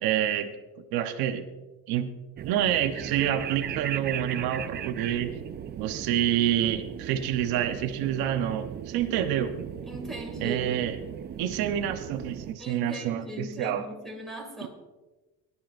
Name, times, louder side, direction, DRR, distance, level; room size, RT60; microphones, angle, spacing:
voice 1, 0.0-0.6 0.9-1.5 1.9-2.1 2.4-5.3 5.8-9.5 10.4-11.0 11.4-13.8 14.6-14.7, right 10 dB, 70° right, 6 dB, 1.1 m, -27 dB
sound 1, 2.4-12.6, right 9 dB, 30° right, 0.4 m, -38 dB
voice 2, 9.9-10.8 12.6-14.7, equal, ahead, 2 dB, 2.4 m, -39 dB
22.5 x 11.5 x 2.6 m, 1.2 s
cardioid pair, 160°, 37 cm